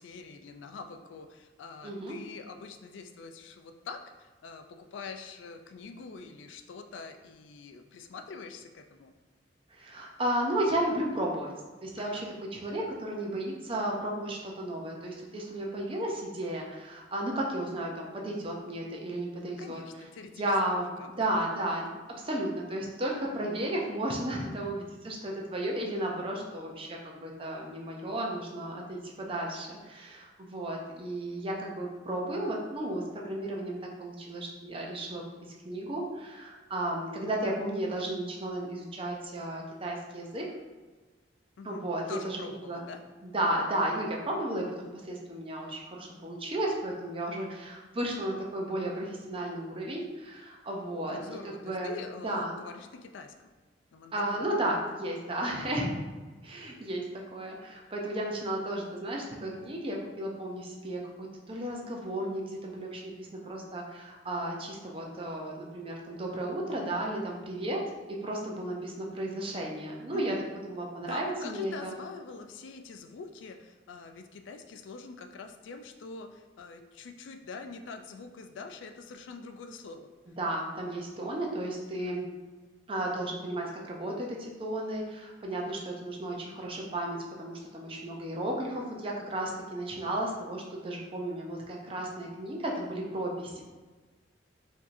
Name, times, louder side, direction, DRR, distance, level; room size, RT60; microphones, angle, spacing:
voice 1, 0.0-9.1 12.0-12.2 19.6-20.4 20.8-21.6 41.6-43.0 50.9-53.3 53.9-54.5 70.1-70.5 71.0-80.1, left 4 dB, 85° left, 6 dB, 0.4 m, -45 dB
voice 2, 1.8-2.2 9.7-11.5 11.8-19.8 20.3-35.2 35.6-40.5 41.6-42.4 42.7-42.8 43.2-51.2 51.4-51.9 52.2-52.6 54.1-55.9 56.4-67.8 68.1-70.4 70.6-71.9 80.3-82.2 82.9-93.6, right 1 dB, 30° right, -1 dB, 0.6 m, -34 dB
4.6 x 2.7 x 2.6 m, 1.3 s
head